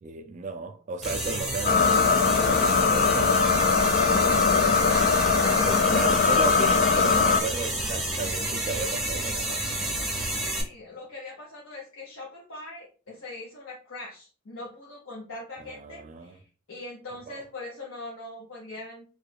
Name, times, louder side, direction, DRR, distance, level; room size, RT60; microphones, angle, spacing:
voice 1, 0.0-3.4 5.6-9.9 15.6-16.4 17.3-17.4, right 3 dB, 40° right, 0.3 m, -34 dB
sound 1, 1.0-10.6, right 1 dB, ahead, 0.8 m, -30 dB
sound 2, 1.6-7.4, left 5 dB, 45° left, 0.3 m, -21 dB
voice 2, 3.8-5.8 10.3-19.1, left 2 dB, 85° left, 0.8 m, -42 dB
3.2 x 2.3 x 3.3 m
head